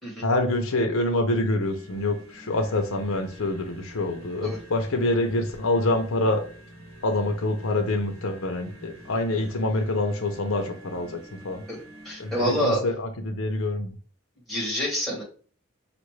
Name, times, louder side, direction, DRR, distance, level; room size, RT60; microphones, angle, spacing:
voice 1, 0.2-6.4 7.0-11.6 12.2-14.0, left 2 dB, 80° left, 5 dB, 0.7 m, -26 dB
sound 1, 1.6-12.7, right 1 dB, 85° right, 1.3 m, -47 dB
voice 2, 11.7-12.8 14.5-15.2, equal, ahead, -4 dB, 1.4 m, -27 dB
5.1 x 2.5 x 3.2 m, 0.40 s
head